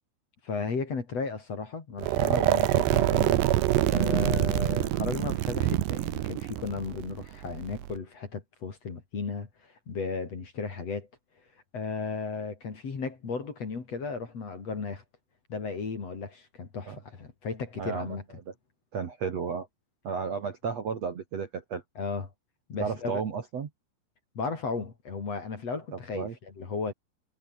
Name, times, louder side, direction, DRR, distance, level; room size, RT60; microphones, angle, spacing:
voice 1, 0.4-3.4 3.9-11.1 11.7-15.0 15.5-18.2 22.0-22.3 22.7-23.2 24.3-26.9, left 4 dB, 40° left, 4.3 m, -35 dB
sound 1, 2.0-8.0, right 15 dB, 80° right, 3.3 m, -26 dB
voice 2, 17.8-18.2 18.5-18.6 18.9-19.7 20.0-21.8 22.8-23.7 26.1-26.3, right 6 dB, 45° right, 2.5 m, -33 dB
omnidirectional pair, 4.9 m